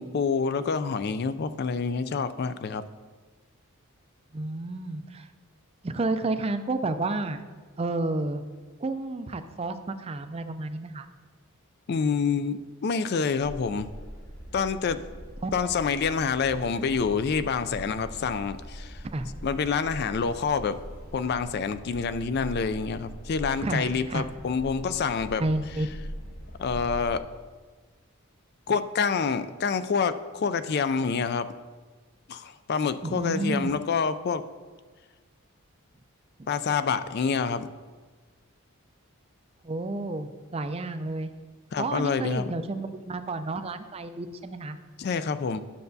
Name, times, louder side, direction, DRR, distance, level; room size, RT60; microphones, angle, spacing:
voice 1, 0.0-2.8 11.9-13.9 14.5-15.0 15.5-19.0 19.4-20.8 21.1-25.4 26.6-27.2 28.7-31.5 32.3-34.4 36.5-37.7 41.7-42.5 45.0-45.6, left 5 dB, 45° left, 12 dB, 0.3 m, -27 dB
voice 2, 4.3-5.3 5.8-7.4 7.8-8.4 8.8-11.1 15.4-15.7 19.0-19.3 23.6-24.3 25.4-25.9 33.0-33.7 39.6-41.3 41.8-44.8, right 2 dB, 25° right, 9 dB, 0.4 m, -31 dB
sound 1, 13.4-27.2, equal, 75° left, 2.4 m, -42 dB
11.5 x 6.7 x 2.7 m, 1.4 s
head